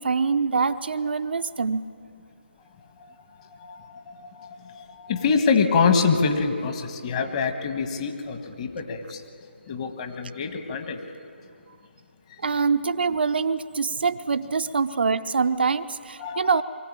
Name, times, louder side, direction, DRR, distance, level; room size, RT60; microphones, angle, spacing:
voice 1, 0.0-1.8 12.4-16.6, right 5 dB, 60° right, 9 dB, 0.7 m, -24 dB
voice 2, 3.6-9.2 9.7-11.0 13.1-13.2 16.2-16.6, left 5 dB, 35° left, 6 dB, 1.5 m, -25 dB
23.5 x 15.5 x 8.8 m, 2.5 s
figure-of-eight pair, 145°, 6 cm